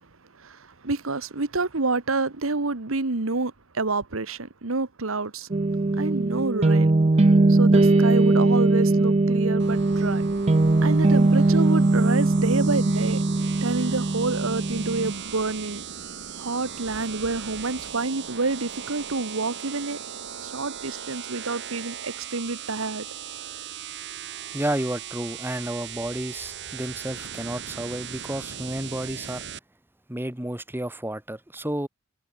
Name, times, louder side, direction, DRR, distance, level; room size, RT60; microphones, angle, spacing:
voice 1, 0.4-5.5 6.0-6.9 7.5-10.2 10.8-13.2 13.6-15.8 16.3-20.0 20.4-23.0, right 3 dB, 75° right, 1.4 m, -28 dB
sound 1, 5.5-15.1, right 2 dB, 30° right, 0.6 m, -20 dB
sound 2, 9.6-29.6, right 8 dB, 60° right, 2.1 m, -38 dB
voice 2, 24.5-29.5 30.1-31.9, right 1 dB, 10° right, 1.6 m, -31 dB
head